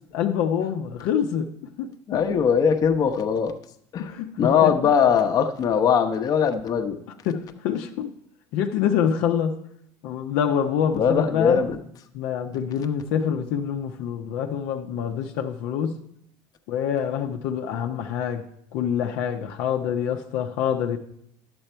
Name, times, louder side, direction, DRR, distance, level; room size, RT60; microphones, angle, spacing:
voice 1, 0.1-1.5 1.8-2.4 4.0-4.9 7.3-8.1 8.5-9.5 10.0-11.6 12.1-15.9 16.7-18.5 18.7-21.0, left 8 dB, 75° left, 0.8 m, -26 dB
voice 2, 2.1-3.5 3.9-7.0 10.9-11.8, left 7 dB, 45° left, 0.9 m, -21 dB
11.0 x 7.8 x 4.4 m
supercardioid pair, 100°, 9 cm